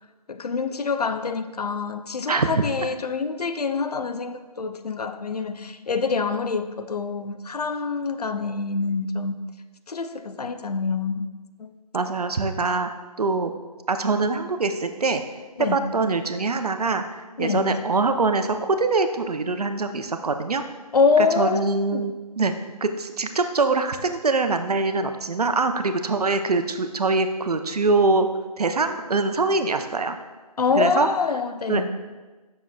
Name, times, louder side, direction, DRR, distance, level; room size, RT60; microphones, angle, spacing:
voice 1, 0.3-9.4 9.9-11.3 11.6-11.7 15.6-15.9 17.4-17.8 20.9-22.1 30.6-31.9, left 5 dB, 75° left, 0.5 m, -25 dB
voice 2, 11.9-12.9 13.2-13.5 13.9-15.2 15.7-20.6 21.2-22.5 22.8-28.3 28.6-30.2 30.7-31.1 31.7-31.9, right 3 dB, 70° right, 0.6 m, -23 dB
7.0 x 6.2 x 2.3 m
figure-of-eight pair, 165°, 21 cm